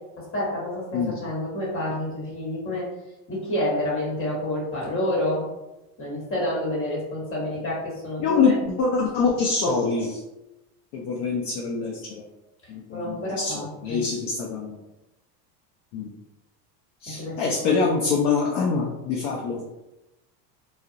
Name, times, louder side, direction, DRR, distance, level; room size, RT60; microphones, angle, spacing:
voice 1, 0.3-2.9 3.3-5.4 6.0-8.6 12.9-14.0 17.2-17.7, left 1 dB, 25° left, -5 dB, 1.2 m, -28 dB
voice 2, 8.2-10.2 10.9-12.2 12.7-14.8 15.9-16.1 17.0-19.6, left 4 dB, 45° left, -1 dB, 0.4 m, -25 dB
2.3 x 2.0 x 2.6 m, 0.99 s
supercardioid pair, 115°, 49 cm